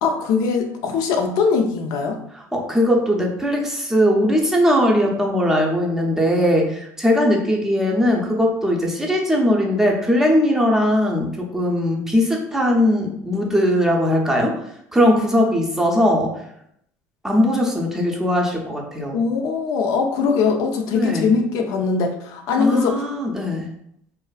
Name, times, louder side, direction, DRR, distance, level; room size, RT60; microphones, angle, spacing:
voice 1, 0.0-2.2 19.1-23.0, left 5 dB, 65° left, 4 dB, 0.4 m, -21 dB
voice 2, 2.3-14.5 14.9-16.3 17.2-19.2 20.9-21.3 22.6-23.7, equal, 5° right, -1 dB, 0.5 m, -19 dB
2.4 x 2.3 x 2.3 m, 0.73 s
supercardioid pair, 100°, 7 cm